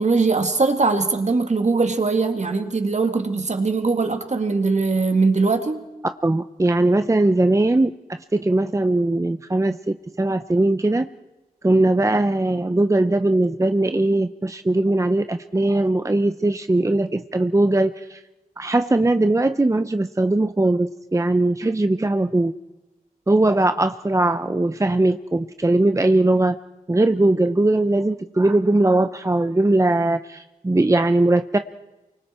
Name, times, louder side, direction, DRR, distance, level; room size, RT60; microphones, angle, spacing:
voice 1, 0.0-5.9, right 4 dB, 50° right, 6 dB, 2.0 m, -21 dB
voice 2, 6.2-7.9 8.3-11.1 11.6-18.2 18.6-22.5 23.3-26.6 26.9-31.6, right 2 dB, 20° right, 9 dB, 0.7 m, -20 dB
28.5 x 24.0 x 4.4 m, 1.1 s
wide cardioid pair, 90°, 15 cm